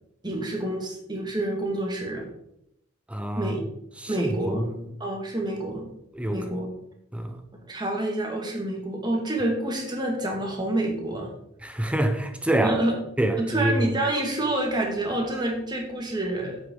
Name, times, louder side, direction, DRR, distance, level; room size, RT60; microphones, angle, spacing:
voice 1, 0.2-2.2 3.4-3.6 4.1-4.7 5.0-5.9 6.3-6.7 7.7-11.3 12.6-12.9 13.4-16.6, right 1 dB, 20° right, 2.0 m, -28 dB
voice 2, 3.1-3.5 4.0-4.9 6.1-6.5 7.1-7.4 11.6-12.8 13.2-13.9, right 1 dB, 5° right, 0.7 m, -26 dB
8.5 x 8.0 x 3.9 m
head